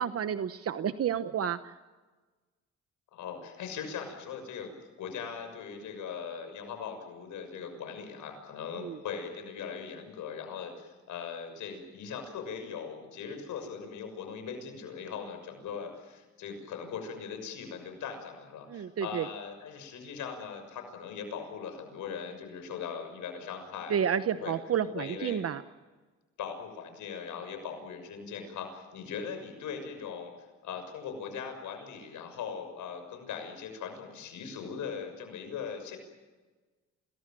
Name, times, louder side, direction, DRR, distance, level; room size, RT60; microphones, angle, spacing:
voice 1, 0.0-1.7 8.8-9.0 18.7-19.3 23.9-25.6, right 8 dB, 50° right, 11 dB, 1.0 m, -30 dB
voice 2, 3.1-4.7 5.0-24.5 24.9-25.4 26.4-30.3 30.6-36.0, left 6 dB, 80° left, 6 dB, 6.5 m, -40 dB
28.0 x 20.5 x 7.7 m, 1.3 s
cardioid pair, 90°, 30 cm